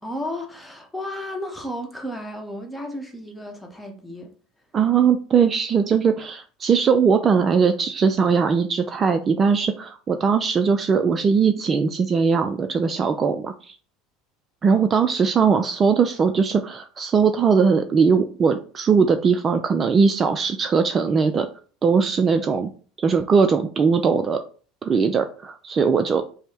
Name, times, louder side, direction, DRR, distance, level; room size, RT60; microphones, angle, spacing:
voice 1, 0.0-4.3, left 1 dB, 5° left, 1.0 m, -33 dB
voice 2, 4.7-13.8 14.6-21.5 21.8-22.7 23.0-24.4 24.8-26.2, right 5 dB, 35° right, 0.3 m, -20 dB
5.2 x 2.1 x 3.4 m
figure-of-eight pair, 70°, 0 cm